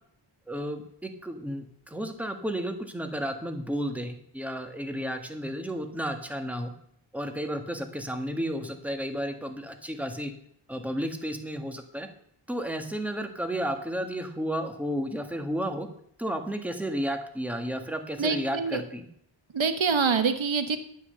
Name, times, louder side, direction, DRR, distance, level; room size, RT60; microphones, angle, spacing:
voice 1, 0.5-6.7 7.1-10.3 10.7-12.1 12.5-15.9 16.2-19.0, equal, 5° right, 5 dB, 1.5 m, -32 dB
voice 2, 18.2-18.8 19.5-20.8, right 5 dB, 70° right, 9 dB, 1.1 m, -25 dB
10.0 x 9.7 x 6.9 m, 0.66 s
wide cardioid pair, 105°, 48 cm